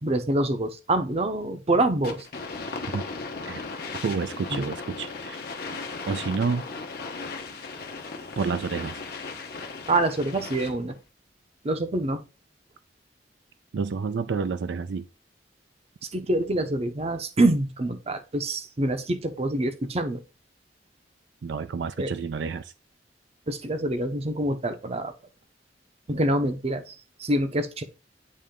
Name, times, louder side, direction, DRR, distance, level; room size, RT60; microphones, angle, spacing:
voice 1, 0.0-2.3 4.5-4.7 9.9-11.0 11.6-12.2 16.1-20.2 22.0-22.1 23.5-25.1 26.1-27.8, right 1 dB, 35° right, 0.7 m, -26 dB
sound 1, 2.0-10.9, left 4 dB, 55° left, 1.0 m, -36 dB
voice 2, 4.0-5.5 6.1-6.7 8.4-9.0 13.7-15.1 21.4-22.7, right 5 dB, 75° right, 0.4 m, -29 dB
8.5 x 3.2 x 3.7 m
head